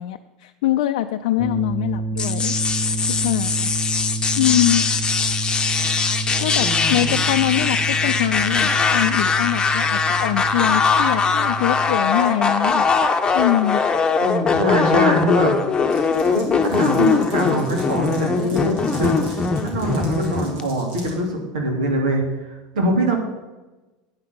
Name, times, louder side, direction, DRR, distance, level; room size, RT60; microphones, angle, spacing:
voice 1, 0.0-2.5 3.0-3.7 4.4-4.8 6.4-12.8 13.3-13.8, left 13 dB, 75° left, 7 dB, 0.4 m, -23 dB
sound 1, 1.4-12.0, right 3 dB, 10° right, 1.7 m, -29 dB
sound 2, 2.2-20.6, left 5 dB, 20° left, 1.1 m, -21 dB
voice 2, 6.6-7.2 14.2-15.5 15.9-23.2, right 1 dB, 85° right, 1 dB, 2.7 m, -23 dB
Glass, 15.9-21.1, right 2 dB, 65° right, 3.7 m, -44 dB
9.5 x 5.9 x 8.3 m, 1.1 s
hypercardioid pair, 95°, 4 cm